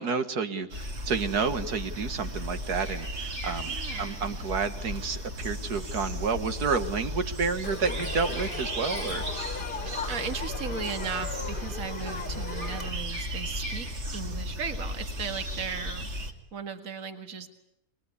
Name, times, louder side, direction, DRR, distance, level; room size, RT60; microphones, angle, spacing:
voice 1, 0.0-9.3, right 5 dB, 90° right, 9 dB, 2.2 m, -30 dB
sound 1, 0.7-16.3, equal, 45° right, 2.5 m, -35 dB
voice 2, 3.7-4.1 10.0-17.5, right 6 dB, 60° right, 7 dB, 2.3 m, -36 dB
Crowd, 7.6-12.9, left 5 dB, 35° left, 1.4 m, -38 dB
29.0 x 22.0 x 8.5 m, 0.82 s
omnidirectional pair, 1.6 m